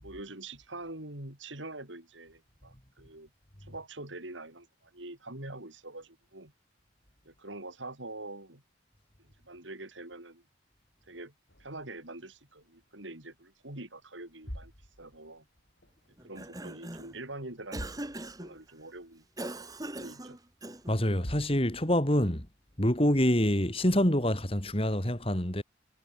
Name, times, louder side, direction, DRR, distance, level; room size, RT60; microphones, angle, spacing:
voice 1, 0.0-3.3 3.6-6.5 7.3-8.6 9.2-10.4 11.1-11.3 11.6-14.7 15.0-15.5 16.2-18.1 18.4-19.3 19.8-20.4, right 2 dB, 90° right, 7.0 m, -44 dB
sound 1, 11.5-13.1 13.4-13.8 14.2-16.1 16.3-17.0 17.3-17.4 17.7-18.7 19.0-19.1 19.7-19.8 20.8-20.9 21.2-22.2, equal, 65° left, 7.6 m, -46 dB
Cough, 16.2-17.2 17.7-18.5 19.4-21.0, right 1 dB, 20° right, 3.2 m, -41 dB
voice 2, 20.9-22.5 22.8-25.6, equal, 30° left, 3.9 m, -26 dB
head